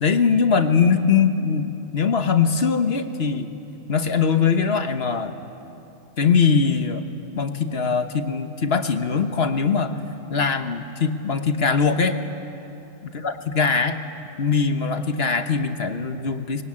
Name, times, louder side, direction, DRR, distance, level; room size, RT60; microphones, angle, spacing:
voice 1, 0.0-3.5 3.9-5.3 6.2-7.0 7.3-10.0 10.3-12.2 13.2-14.0 14.4-16.6, left 5 dB, 50° left, 8 dB, 1.4 m, -21 dB
25.0 x 21.5 x 9.8 m, 2.9 s
omnidirectional pair, 1.4 m